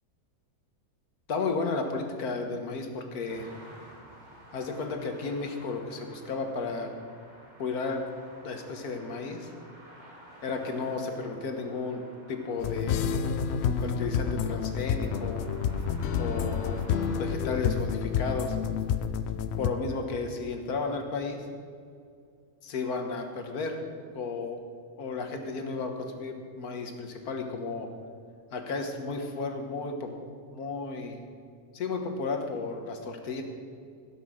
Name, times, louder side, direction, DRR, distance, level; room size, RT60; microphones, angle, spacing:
voice 1, 1.3-3.5 4.5-6.9 7.6-8.0 8.4-9.5 10.4-12.0 12.3-13.2 13.8-15.5 16.2-16.8 17.2-18.6 19.6-21.4 22.6-23.8 24.1-24.6 25.0-27.9 28.5-30.1 30.5-31.2 31.7-33.4, left 4 dB, 90° left, 4 dB, 1.7 m, -33 dB
sound 1, 3.3-17.2, right 1 dB, 30° right, 1.9 m, -52 dB
sound 2, 12.6-19.7, left 7 dB, 65° left, 0.7 m, -29 dB
15.5 x 6.4 x 6.3 m, 2.3 s
omnidirectional pair, 1.5 m